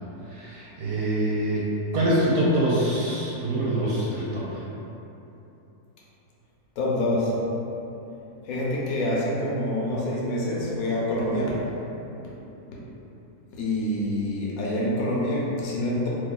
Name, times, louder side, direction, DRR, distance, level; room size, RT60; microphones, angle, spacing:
voice 1, 0.3-1.7 1.9-4.6, right 1 dB, 70° right, -6 dB, 1.1 m, -25 dB
voice 2, 6.8-7.3 8.4-11.6 13.5-16.1, left 1 dB, 75° left, -5 dB, 1.1 m, -26 dB
2.8 x 2.3 x 3.7 m, 3.0 s
omnidirectional pair, 1.6 m